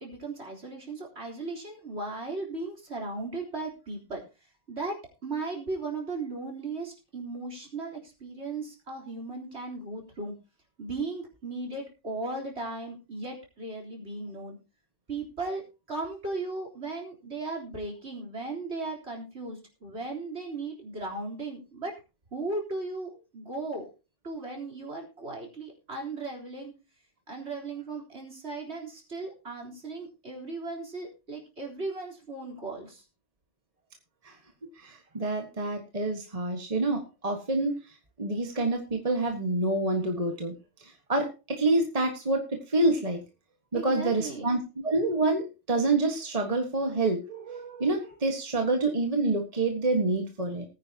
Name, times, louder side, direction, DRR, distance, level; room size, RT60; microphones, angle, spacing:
voice 1, 0.0-4.2 4.7-10.3 10.8-14.6 15.1-21.9 22.3-23.9 24.2-26.7 27.3-33.0 43.7-44.5, right 3 dB, 60° right, -1 dB, 4.0 m, -36 dB
voice 2, 34.8-37.7 38.2-40.5 40.8-43.2 43.7-44.6 44.8-50.6, right 2 dB, 30° right, 3 dB, 1.6 m, -27 dB
19.0 x 9.7 x 2.9 m, 0.30 s
omnidirectional pair, 1.3 m